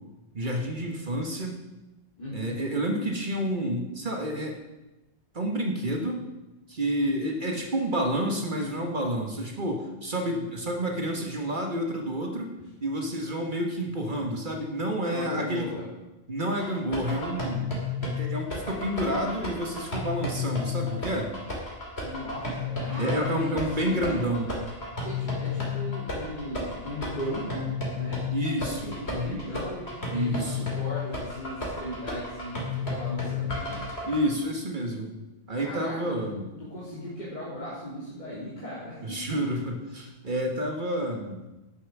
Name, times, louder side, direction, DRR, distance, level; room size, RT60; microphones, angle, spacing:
voice 1, 0.3-1.6 2.3-4.6 5.3-6.2 6.7-12.5 12.8-15.7 16.3-17.7 18.0-21.3 23.0-24.5 28.3-29.4 30.1-30.7 34.1-35.1 35.5-36.5 39.0-41.4, equal, 50° right, 2 dB, 1.5 m, -29 dB
voice 2, 2.2-2.6 15.1-15.9 22.0-24.3 25.0-28.2 28.7-33.8 35.5-36.3 36.6-39.4, left 1 dB, 45° left, -9 dB, 3.1 m, -37 dB
sound 1, 16.6-34.2, left 4 dB, 75° left, 3.1 m, -32 dB
11.0 x 7.1 x 6.1 m, 1.0 s
omnidirectional pair, 1.1 m